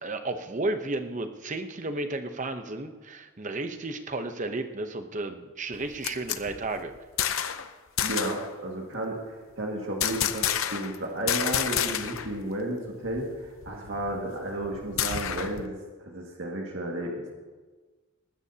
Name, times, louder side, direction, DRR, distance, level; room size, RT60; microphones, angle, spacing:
voice 1, 0.0-6.9, right 2 dB, 35° right, 7 dB, 0.8 m, -33 dB
sound 1, 5.7-7.7 8.0-8.5 10.0-11.0 11.3-12.3 12.6-12.7 13.1-15.7, left 10 dB, 75° left, 0.7 m, -30 dB
voice 2, 8.0-17.3, right 1 dB, 60° right, -1 dB, 2.0 m, -33 dB
19.5 x 15.0 x 2.8 m, 1.3 s
head